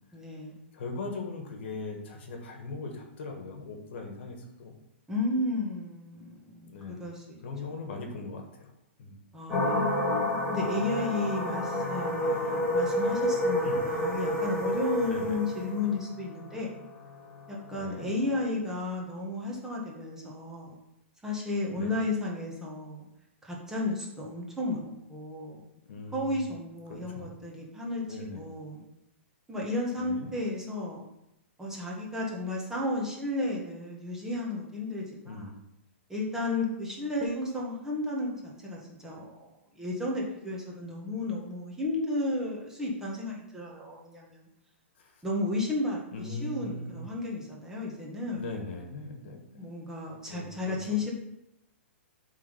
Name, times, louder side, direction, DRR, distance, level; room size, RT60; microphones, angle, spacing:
voice 1, 0.1-0.6 5.1-7.4 7.6-7.7 9.3-10.0 10.5-16.7 17.5-20.7 21.2-23.0 23.4-25.6 26.1-28.8 29.5-31.0 31.6-35.5 36.1-38.3 38.6-39.5 39.7-44.5 45.2-48.4 49.6-51.1, left 2 dB, 5° right, -4 dB, 1.7 m, -33 dB
voice 2, 0.7-4.7 6.7-7.0 7.4-8.7 9.0-9.2 13.6-13.9 15.0-15.4 17.7-18.1 21.7-21.9 25.8-26.5 26.9-27.3 28.0-28.4 30.0-30.3 35.2-35.5 45.0-45.2 46.1-47.0 48.3-49.6 50.3-51.0, left 3 dB, 60° left, 3 dB, 1.5 m, -40 dB
sound 1, 9.5-18.4, left 1 dB, 15° left, 2.2 m, -29 dB
7.4 x 3.8 x 5.4 m, 0.85 s
hypercardioid pair, 130°, 7 cm